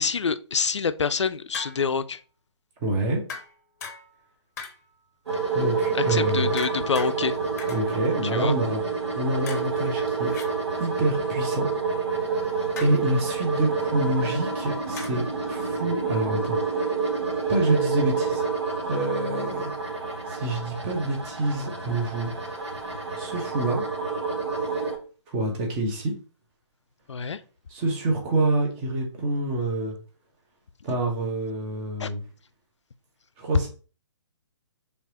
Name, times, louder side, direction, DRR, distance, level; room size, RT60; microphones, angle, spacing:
voice 1, 0.0-2.2 6.1-7.3 8.3-8.5 27.1-27.4 32.0-32.1, left 5 dB, 70° left, 0.4 m, -26 dB
sound 1, 1.5-2.1 3.3-4.3 4.6-5.0 6.6-7.1 7.6-7.8 9.5-10.5 12.8-13.1 15.0-15.3, left 5 dB, 35° left, 0.7 m, -39 dB
voice 2, 2.8-3.2 5.5-6.5 7.7-8.8 9.1-10.3 10.8-11.7 12.8-16.6 17.5-18.5 18.9-19.7 20.3-22.3 23.1-23.8 25.3-26.1 27.7-29.9 30.8-32.2 33.4-33.7, right 2 dB, 20° right, 1.1 m, -27 dB
sound 2, 5.3-25.0, right 4 dB, 65° right, 1.2 m, -28 dB
4.5 x 3.4 x 2.9 m
figure-of-eight pair, 135°, 15 cm